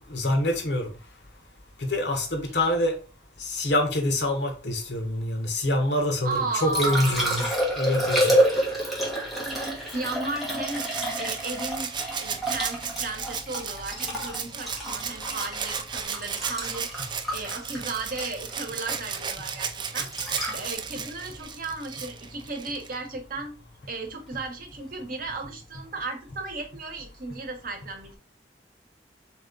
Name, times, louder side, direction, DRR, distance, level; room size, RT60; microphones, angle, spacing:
voice 1, 0.1-0.9 1.8-3.0 3.4-8.4, left 1 dB, 75° left, 1.0 m, -26 dB
voice 2, 6.2-7.5 9.9-10.9 11.2-11.9 12.2-20.1 20.5-23.5 23.9-28.2, right 3 dB, 55° right, 1.1 m, -35 dB
Liquid, 6.3-22.4 25.2-25.4, right 1 dB, ahead, 1.2 m, -29 dB
Rattle (instrument), 10.7-23.0 24.4-24.5, right 6 dB, 25° right, 0.3 m, -34 dB
3.5 x 3.1 x 3.8 m
head